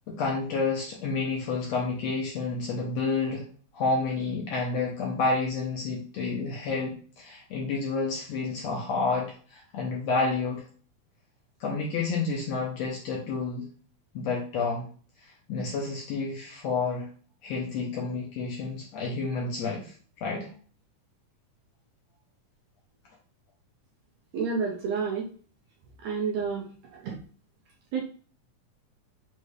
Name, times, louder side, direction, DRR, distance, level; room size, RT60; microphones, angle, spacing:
voice 1, 0.1-3.4 3.7-10.6 11.6-13.6 14.1-14.9 15.5-17.1 17.4-19.9 20.2-20.5, left 4 dB, 75° left, -3 dB, 1.7 m, -29 dB
voice 2, 24.3-25.2 26.0-26.6 27.0-27.2 27.9-28.0, right 5 dB, 75° right, -2 dB, 1.6 m, -29 dB
5.3 x 2.5 x 3.2 m, 0.42 s
omnidirectional pair, 3.7 m